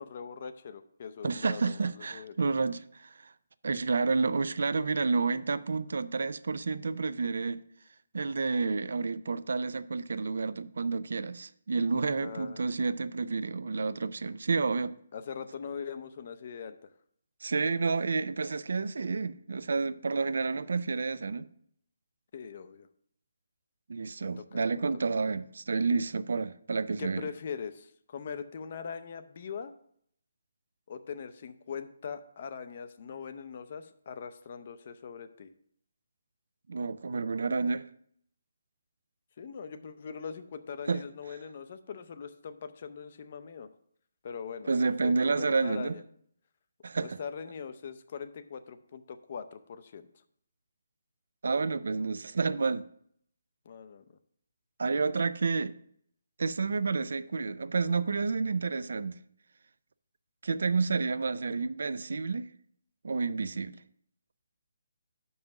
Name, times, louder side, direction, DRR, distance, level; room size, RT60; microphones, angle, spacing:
voice 1, 0.0-2.3 12.2-12.6 15.1-16.9 22.3-22.9 24.2-24.8 27.0-29.7 30.9-35.5 39.4-43.7 44.2-44.7 45.0-46.0 47.0-50.1 53.7-54.0, left 6 dB, 40° left, 0.5 m, -41 dB
voice 2, 1.2-3.3 3.6-7.6 8.1-14.9 17.4-21.5 23.9-27.3 36.7-37.9 40.9-41.0 44.7-45.9 46.8-47.2 51.4-52.8 54.8-55.7 56.4-59.2 60.4-62.5 63.0-63.8, right 4 dB, 70° right, 0.4 m, -30 dB
5.9 x 5.5 x 6.4 m
hypercardioid pair, 170°, 0 cm